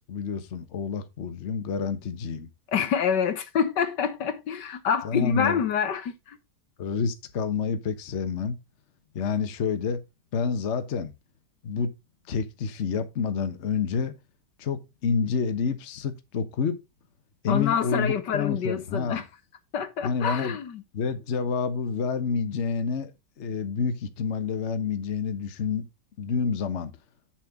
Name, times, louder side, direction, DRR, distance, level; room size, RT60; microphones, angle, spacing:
voice 1, 0.0-2.5 5.0-5.6 6.8-8.6 9.1-10.0 10.3-11.1 11.6-11.9 12.3-14.1 14.6-16.8 17.4-19.2 20.0-20.6 20.9-25.8 26.2-26.9, left 5 dB, 45° left, 1.2 m, -28 dB
voice 2, 2.7-6.4 17.5-19.3 19.7-20.8, left 7 dB, 70° left, 1.7 m, -27 dB
7.8 x 7.3 x 3.7 m
omnidirectional pair, 1.9 m